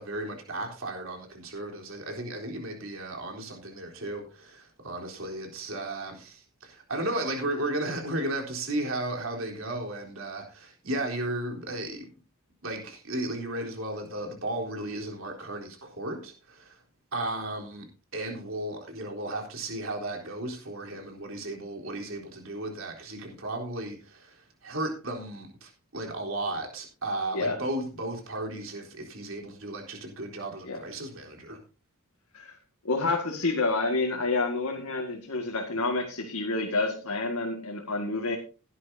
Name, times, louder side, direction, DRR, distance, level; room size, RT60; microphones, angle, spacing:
voice 1, 0.0-12.1 12.6-16.8 17.1-17.9 18.1-31.6, right 1 dB, 60° right, 3.8 m, -34 dB
voice 2, 32.8-38.4, left 3 dB, 75° left, 2.0 m, -28 dB
16.0 x 11.0 x 2.8 m
head